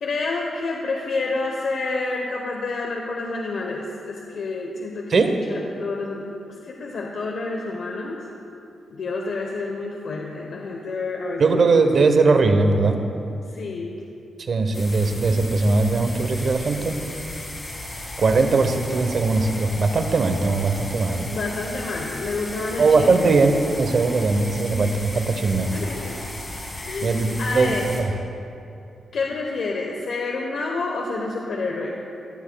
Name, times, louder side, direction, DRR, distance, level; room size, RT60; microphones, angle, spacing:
voice 1, 0.0-5.2 5.5-8.2 8.9-12.3 13.5-14.0 21.3-23.4 25.7-26.2 26.7-27.9 29.1-32.0, left 3 dB, 65° left, -1 dB, 0.9 m, -29 dB
voice 2, 11.4-13.0 14.4-17.0 18.2-21.3 22.8-25.7 27.0-28.1, right 3 dB, 50° right, 6 dB, 0.9 m, -20 dB
sound 1, 14.7-28.0, left 1 dB, 20° left, 2.4 m, -35 dB
17.5 x 12.0 x 2.3 m, 2.7 s
wide cardioid pair, 120°, 0 cm